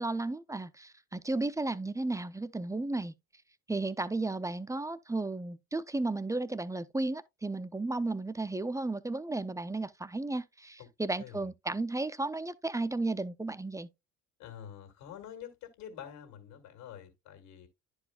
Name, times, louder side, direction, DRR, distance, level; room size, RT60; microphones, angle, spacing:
voice 1, 0.0-3.1 3.7-13.9, right 2 dB, 10° right, 0.4 m, -34 dB
voice 2, 14.4-17.7, left 9 dB, 70° left, 1.9 m, -47 dB
11.0 x 4.7 x 2.2 m
hypercardioid pair, 55°, 43 cm